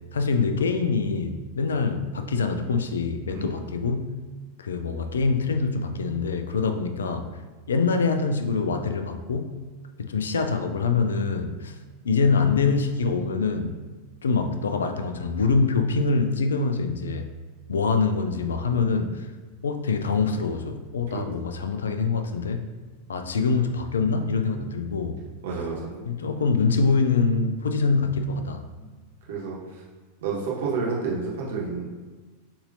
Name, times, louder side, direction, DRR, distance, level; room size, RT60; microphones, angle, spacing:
voice 1, 0.1-4.2 4.6-7.3 7.7-9.6 10.0-11.8 12.0-13.8 14.2-17.3 17.7-19.3 19.6-22.6 23.1-25.2 26.0-28.6, left 4 dB, 70° left, 7 dB, 0.3 m, -24 dB
voice 2, 25.4-25.8 29.3-29.6 30.2-31.9, right 4 dB, 55° right, -4 dB, 1.2 m, -29 dB
6.7 x 2.8 x 2.6 m, 1.4 s
figure-of-eight pair, 90°, 0 cm